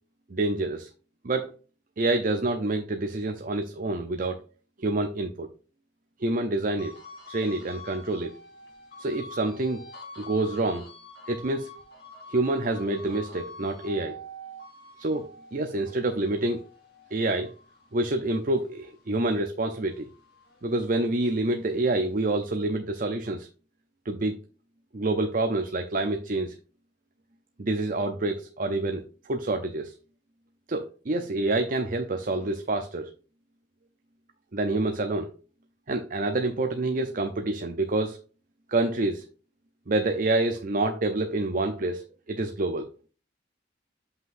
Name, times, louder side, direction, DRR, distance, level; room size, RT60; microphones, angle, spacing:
voice 1, 0.3-0.9 1.2-1.5 2.0-4.4 4.8-5.5 6.2-6.9 7.3-8.3 9.0-9.8 10.2-10.9 11.3-11.8 12.3-14.2 15.0-16.6 17.1-17.5 17.9-20.1 20.6-23.5 24.1-24.3 24.9-26.6 27.6-29.9 30.7-33.1 34.5-35.3 35.9-38.2 38.7-39.2 39.9-43.1, right 2 dB, 50° right, 6 dB, 0.6 m, -27 dB
sound 1, 6.8-19.4 19.8-21.5, left 1 dB, 60° left, 2.7 m, -46 dB
7.7 x 5.8 x 2.6 m, 0.36 s
head